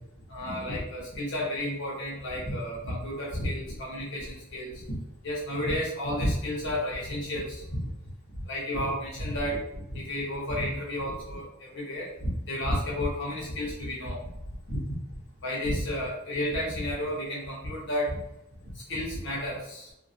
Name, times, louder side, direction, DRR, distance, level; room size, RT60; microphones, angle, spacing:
voice 1, 0.3-5.0 5.2-7.8 8.3-9.6 9.9-14.2 14.7-14.8 15.4-18.2 18.6-19.9, left 1 dB, 55° left, -5 dB, 1.3 m, -31 dB
2.9 x 2.8 x 2.8 m, 0.86 s
head